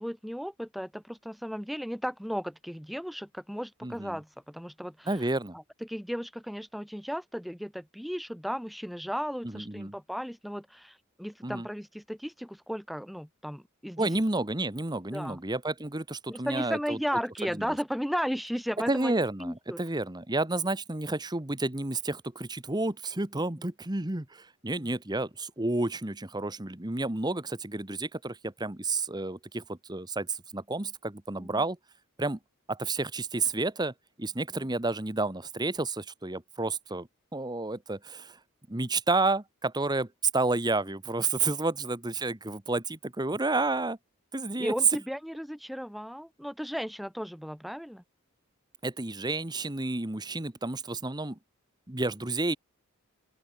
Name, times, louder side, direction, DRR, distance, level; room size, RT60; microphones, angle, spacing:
voice 1, 0.0-5.1 5.5-14.1 15.1-15.4 16.3-19.8 24.8-24.9 31.4-31.6 34.5-34.6 44.6-48.0, equal, ahead, 2.1 m, -35 dB
voice 2, 3.8-4.2 5.1-5.5 9.4-9.9 11.4-11.7 14.0-17.0 17.5-17.7 18.9-31.8 32.2-32.4 32.7-33.9 34.2-38.4 38.7-40.1 40.3-44.0 44.3-44.7 48.8-51.4 51.9-52.6, right 2 dB, 20° right, 1.3 m, -31 dB
open air
head